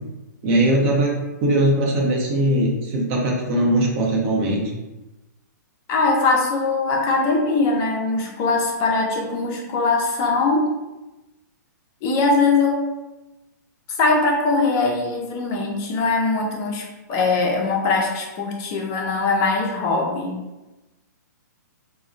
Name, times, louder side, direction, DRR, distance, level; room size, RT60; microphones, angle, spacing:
voice 1, 0.4-4.7, right 1 dB, 40° right, -2 dB, 0.8 m, -20 dB
voice 2, 5.9-10.7 12.0-12.9 14.0-20.4, left 3 dB, 30° left, 0 dB, 0.5 m, -21 dB
3.7 x 2.1 x 2.5 m, 1.1 s
hypercardioid pair, 130°, 10 cm